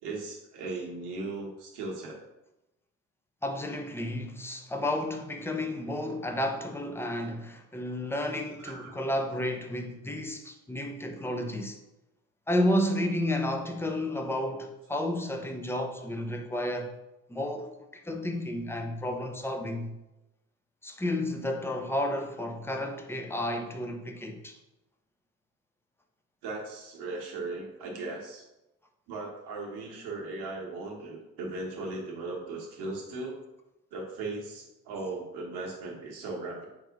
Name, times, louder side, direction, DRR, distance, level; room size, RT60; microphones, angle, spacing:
voice 1, 0.0-2.2 8.6-8.9 26.4-28.4 29.1-33.4 33.9-36.6, right 3 dB, 65° right, 1.1 m, -37 dB
voice 2, 3.4-11.8 12.5-17.0 17.3-20.0 20.8-24.6, left 1 dB, 5° left, 0.5 m, -31 dB
4.7 x 2.6 x 3.7 m
figure-of-eight pair, 40°, 43 cm